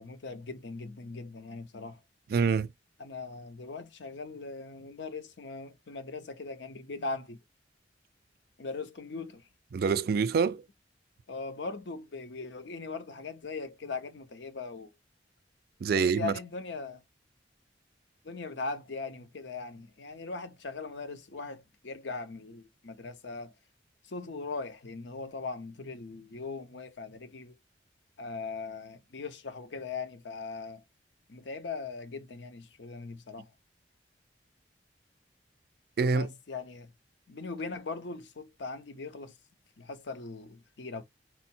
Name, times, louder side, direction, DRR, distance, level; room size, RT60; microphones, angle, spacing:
voice 1, 0.0-2.0 3.0-7.4 8.6-9.4 11.3-14.9 15.9-17.0 18.2-23.5 24.1-27.6 28.2-30.8 31.3-33.5 36.1-36.9 37.3-39.3 39.8-41.0, left 4 dB, 70° left, 0.7 m, -40 dB
voice 2, 2.3-2.7 9.7-10.6 15.8-16.3 36.0-36.3, right 5 dB, 55° right, 0.3 m, -26 dB
4.5 x 2.1 x 4.3 m
head